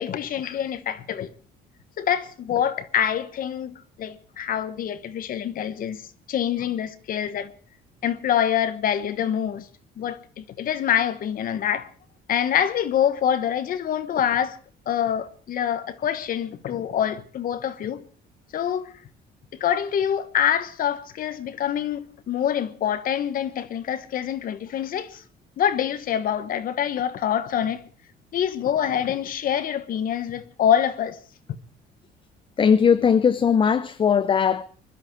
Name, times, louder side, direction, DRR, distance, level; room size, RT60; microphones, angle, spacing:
voice 1, 0.0-1.3 2.0-6.0 6.3-7.5 8.0-9.7 10.0-11.9 12.3-14.6 14.9-18.0 18.5-18.9 19.6-25.2 25.6-27.8 28.3-31.2 31.5-31.6, left 9 dB, 55° left, 1.2 m, -25 dB
voice 2, 32.6-34.6, left 7 dB, 30° left, 0.6 m, -19 dB
22.0 x 12.0 x 4.6 m
cardioid pair, 130°, 18 cm